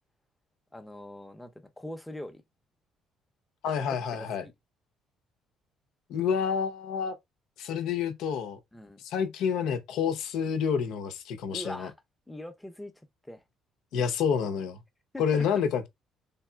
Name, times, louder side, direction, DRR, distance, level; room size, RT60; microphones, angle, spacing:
voice 1, 0.7-2.4 3.9-4.5 8.7-9.0 11.5-11.9 12.3-12.9 13.2-13.4 15.1-15.5, left 1 dB, 5° left, 0.7 m, -42 dB
voice 2, 3.6-4.4 6.1-7.2 7.6-8.6 9.0-11.9 13.9-14.8 15.2-15.9, left 7 dB, 75° left, 0.6 m, -28 dB
3.4 x 2.7 x 2.2 m
supercardioid pair, 75°, 0 cm